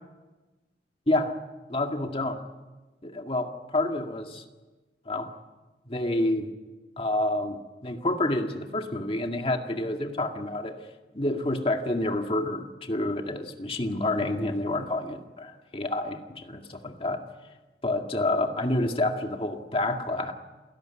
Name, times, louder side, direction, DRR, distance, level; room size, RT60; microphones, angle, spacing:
voice 1, 1.7-2.4 3.0-4.4 5.1-5.3 5.9-6.5 7.0-10.8 11.1-17.2 17.8-20.3, left 1 dB, 30° left, 4 dB, 2.0 m, -28 dB
27.5 x 17.5 x 9.8 m, 1.2 s
head